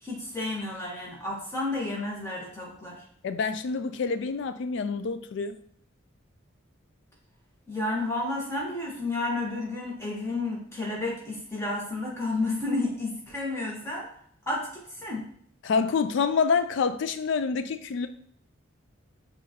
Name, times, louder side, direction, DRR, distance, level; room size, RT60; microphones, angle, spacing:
voice 1, 0.0-3.0 7.7-14.1 14.5-15.2, left 2 dB, 15° left, -4 dB, 1.2 m, -31 dB
voice 2, 3.2-5.6 15.6-18.1, left 5 dB, 60° left, 10 dB, 0.3 m, -27 dB
5.7 x 2.6 x 2.8 m, 0.63 s
head